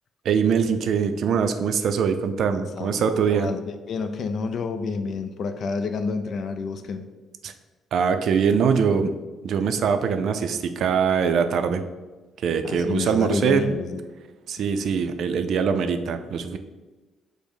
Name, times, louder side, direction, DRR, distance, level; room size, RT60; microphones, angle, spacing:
voice 1, 0.2-3.5 7.4-7.5 7.9-9.1 9.4-11.8 12.4-13.7 14.5-16.6, right 6 dB, 70° right, 8 dB, 0.4 m, -22 dB
voice 2, 2.7-7.0 12.6-14.0, left 4 dB, 60° left, 9 dB, 0.4 m, -29 dB
5.3 x 2.0 x 4.7 m, 1.2 s
cardioid pair, 90°, 0 cm